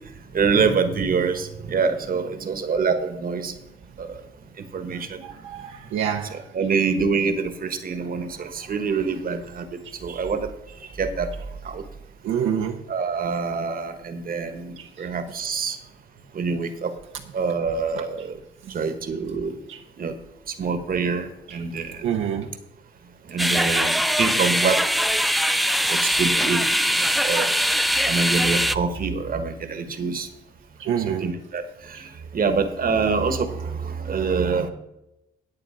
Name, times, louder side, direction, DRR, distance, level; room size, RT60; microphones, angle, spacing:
voice 1, 0.3-3.6 4.0-4.2 4.6-5.2 6.3-11.3 11.6-11.9 12.9-15.8 16.3-17.0 17.3-18.4 18.7-19.6 20.0-20.2 20.5-22.0 23.3-24.8 25.9-26.6 26.9-27.6 28.0-30.3 31.0-34.7, right 5 dB, 45° right, 9 dB, 1.4 m, -26 dB
voice 2, 4.9-6.7 9.8-9.9 12.2-12.8 14.8-15.1 18.2-18.3 18.6-18.8 19.7-19.8 21.5-21.6 22.0-22.5 26.7-26.8 27.9-28.1 30.8-31.3 31.9-32.1, right 8 dB, 80° right, 3 dB, 0.9 m, -28 dB
sound 1, 23.4-28.8, equal, ahead, 0.4 m, -22 dB
9.9 x 8.3 x 5.0 m, 0.88 s
cardioid pair, 90°, 20 cm